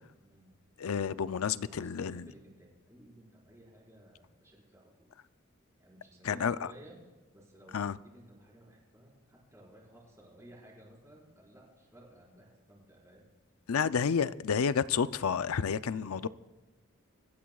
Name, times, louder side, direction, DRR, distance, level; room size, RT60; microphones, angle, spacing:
voice 1, 0.2-0.5 1.6-5.1 5.8-6.9 7.3-13.3 15.8-16.2, right 1 dB, 15° right, 5.1 m, -56 dB
voice 2, 0.8-2.3 6.2-6.7 7.7-7.9 13.7-16.3, left 6 dB, 85° left, 0.5 m, -30 dB
25.5 x 14.5 x 2.4 m
head